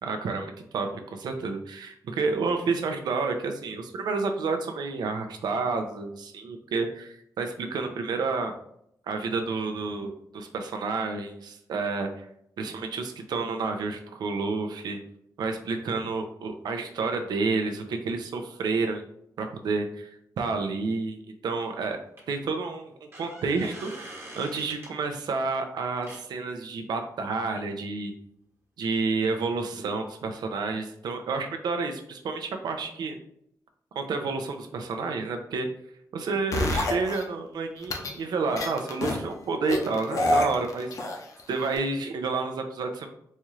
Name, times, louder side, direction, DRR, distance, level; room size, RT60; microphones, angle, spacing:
voice 1, 0.0-8.5 9.1-12.3 12.6-15.0 15.4-19.0 19.4-21.2 21.4-22.0 22.3-28.1 28.8-33.2 33.9-35.7 36.1-40.9 41.5-43.1, right 4 dB, 85° right, 5 dB, 0.5 m, -30 dB
sound 1, 21.6-21.7 22.2-22.3 22.9-24.9 26.0-26.2 29.5-29.6 29.8-29.9, right 1 dB, 35° right, 1.2 m, -44 dB
sound 2, 36.5-37.2 37.8-38.1 38.6-39.2 39.7-41.4 41.8-41.9, left 1 dB, 55° left, 0.6 m, -26 dB
4.2 x 2.4 x 3.1 m, 0.72 s
wide cardioid pair, 155°, 7 cm